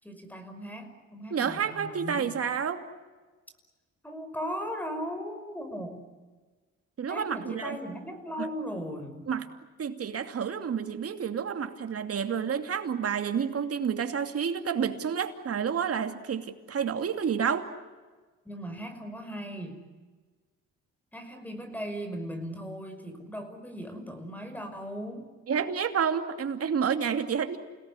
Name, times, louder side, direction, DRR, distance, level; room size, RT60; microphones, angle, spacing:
voice 1, 0.0-2.3 4.0-6.0 7.1-9.3 18.5-19.8 21.1-25.3, equal, 5° left, 7 dB, 5.6 m, -38 dB
voice 2, 1.3-2.8 7.0-7.8 8.4-8.5 9.3-9.5 9.8-17.7 25.5-27.6, right 7 dB, 50° right, 7 dB, 2.7 m, -29 dB
29.5 x 18.0 x 9.8 m, 1.3 s
cardioid pair, 90°, 30 cm